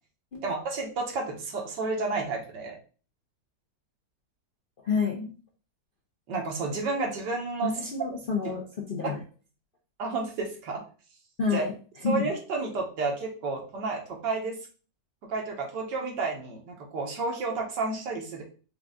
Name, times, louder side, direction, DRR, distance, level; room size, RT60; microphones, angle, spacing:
voice 1, 0.4-2.8 6.3-7.7 10.0-10.8 11.5-11.6 12.0-14.6 15.3-18.4, right 3 dB, 75° right, 0 dB, 1.7 m, -31 dB
voice 2, 4.8-5.3 7.6-8.6 8.9-9.2 11.4-11.7 12.0-12.3, left 5 dB, 50° left, -2 dB, 0.6 m, -28 dB
5.3 x 2.4 x 3.6 m, 0.38 s
omnidirectional pair, 1.9 m